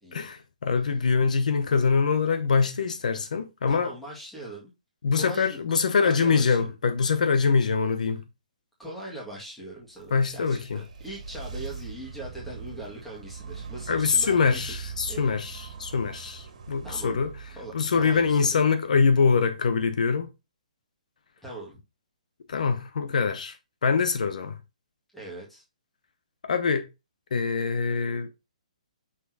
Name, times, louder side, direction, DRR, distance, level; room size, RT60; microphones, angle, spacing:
voice 1, 0.1-3.9 5.0-8.2 10.1-10.8 13.9-17.3 17.7-20.3 22.5-23.5 23.8-24.5 26.4-26.8 27.3-28.3, left 5 dB, 70° left, 0.9 m, -24 dB
voice 2, 3.7-4.7 5.1-5.6 6.0-6.7 8.8-14.8 15.1-15.3 16.8-17.2 17.5-18.6 21.4-21.8 25.1-25.6, right 1 dB, 5° left, 1.9 m, -41 dB
sound 1, 9.8-19.1, right 5 dB, 60° right, 1.8 m, -42 dB
6.1 x 3.4 x 4.7 m
hypercardioid pair, 160°, 4 cm